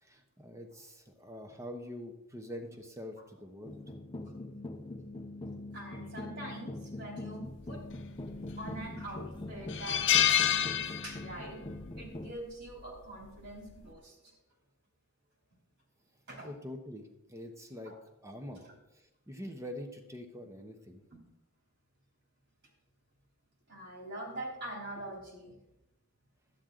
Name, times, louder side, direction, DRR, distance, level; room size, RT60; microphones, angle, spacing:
voice 1, 0.0-3.8 16.4-17.9 18.2-18.6 18.9-21.0, left 1 dB, 15° right, 5 dB, 1.0 m, -45 dB
sound 1, 3.6-12.3, left 1 dB, 20° left, 0.5 m, -43 dB
voice 2, 5.7-7.8 8.6-11.6 12.0-14.3 16.3-16.5 17.8-17.9 18.5-18.7 23.7-25.5, right 1 dB, 50° right, -1 dB, 3.2 m, -44 dB
sound 2, 8.3-8.8 9.2-9.3 9.7-11.5 11.8-12.0 13.3-13.6, left 10 dB, 55° left, 0.7 m, -28 dB
12.0 x 9.4 x 3.8 m, 0.91 s
head